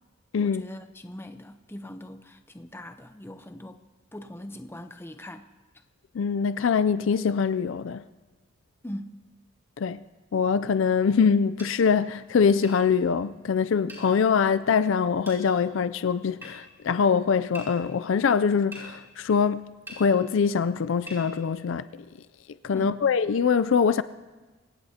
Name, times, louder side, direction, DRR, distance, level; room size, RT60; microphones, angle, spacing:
voice 1, 0.4-3.8 4.1-5.5 8.8-9.2 22.7-23.0, left 1 dB, 10° left, 0.7 m, -40 dB
voice 2, 6.1-8.0 9.8-10.0 10.3-21.8 22.6-24.0, left 6 dB, 65° left, 0.4 m, -23 dB
sound 1, 11.6-11.7 12.6-12.8 13.9-14.1 15.2-15.4 16.4-16.5 17.5-17.7 18.7-18.9 19.9-20.0 21.1-21.2, right 1 dB, 10° right, 5.2 m, -41 dB
25.0 x 17.0 x 2.8 m
head